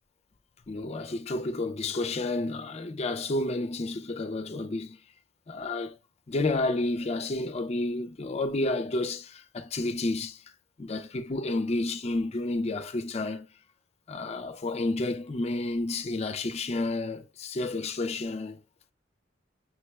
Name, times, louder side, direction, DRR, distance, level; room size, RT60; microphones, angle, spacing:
voice 1, 0.7-5.0 5.5-6.0 6.3-10.4 10.8-13.5 14.1-18.6, left 2 dB, 35° left, 0.4 m, -30 dB
5.8 x 2.2 x 3.0 m
head